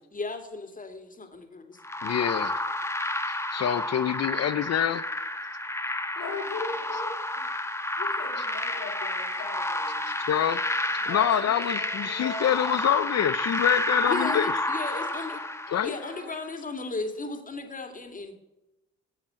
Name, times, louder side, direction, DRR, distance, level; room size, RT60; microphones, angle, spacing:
voice 1, 0.1-1.8 14.1-15.4 15.8-18.3, left 3 dB, 25° left, 7 dB, 2.6 m, -35 dB
sound 1, 1.8-16.2, left 1 dB, 10° left, 1.5 m, -30 dB
voice 2, 2.0-2.5 3.5-5.0 10.3-10.6 11.1-14.5 15.7-15.9, left 10 dB, 55° left, 14 dB, 0.8 m, -25 dB
voice 3, 6.1-7.5 8.0-10.1 11.0-12.8 15.7-16.3, left 3 dB, 85° left, 0 dB, 5.9 m, -39 dB
14.5 x 7.5 x 8.9 m, 0.95 s
cardioid pair, 90°, 30 cm